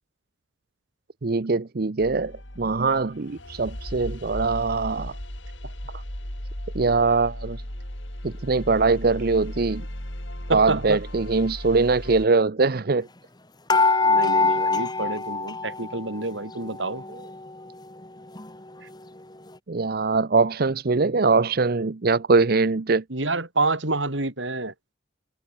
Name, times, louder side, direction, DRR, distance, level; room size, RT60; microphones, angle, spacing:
voice 1, 1.2-5.1 5.9-6.0 6.7-7.6 8.2-9.8 10.5-13.1 17.1-17.2 19.7-23.0, right 4 dB, 50° right, 0.7 m, -22 dB
sound 1, 2.0-12.3, equal, 75° left, 6.4 m, -36 dB
voice 2, 10.5-11.0 14.0-17.0 23.1-24.7, right 2 dB, 75° right, 3.7 m, -28 dB
sound 2, 13.7-16.2 16.5-17.5 18.0-18.1 18.4-18.5, left 3 dB, 20° left, 2.5 m, -23 dB
head